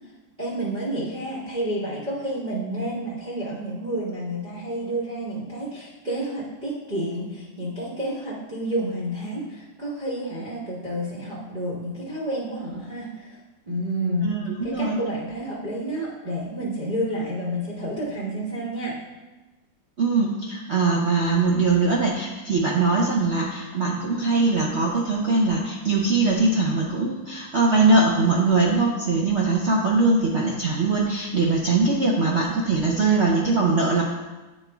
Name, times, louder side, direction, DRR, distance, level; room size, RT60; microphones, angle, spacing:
voice 1, 0.4-13.4 13.7-14.3 14.6-19.0, right 1 dB, 30° right, -8 dB, 1.1 m, -30 dB
voice 2, 14.2-15.0 20.0-34.1, right 3 dB, 65° right, -3 dB, 0.6 m, -21 dB
8.2 x 4.4 x 3.4 m, 1.1 s
omnidirectional pair, 2.0 m